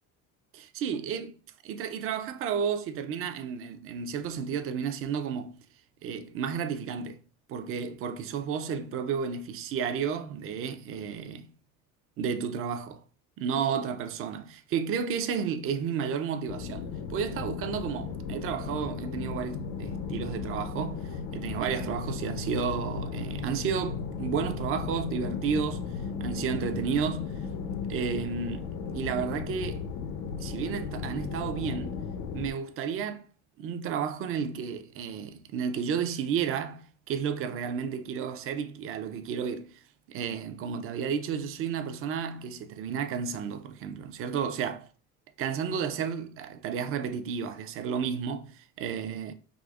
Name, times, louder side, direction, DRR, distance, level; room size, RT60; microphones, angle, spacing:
voice 1, 0.8-1.4 1.6-5.6 6.0-7.2 7.5-11.5 12.2-13.0 13.4-25.8 26.2-27.3 27.9-29.8 30.4-32.0 32.3-33.2 33.6-39.7 40.1-44.9 45.4-49.3, right 7 dB, 45° right, 0.5 m, -32 dB
sound 1, 16.5-32.5, left 6 dB, 75° left, 0.6 m, -35 dB
4.8 x 2.0 x 2.3 m
cardioid pair, 115°, 32 cm